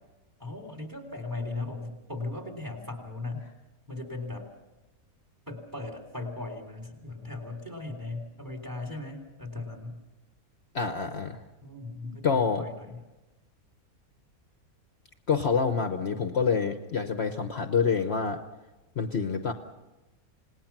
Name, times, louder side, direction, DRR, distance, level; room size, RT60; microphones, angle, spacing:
voice 1, 0.4-3.5 3.9-4.5 5.5-10.0 11.6-13.0 15.7-15.8, left 2 dB, 15° right, 3 dB, 3.4 m, -38 dB
voice 2, 10.7-11.4 12.0-12.7 15.3-18.4 19.0-19.5, left 5 dB, 50° left, 7 dB, 1.2 m, -27 dB
28.0 x 19.0 x 6.0 m, 1.1 s
omnidirectional pair, 1.5 m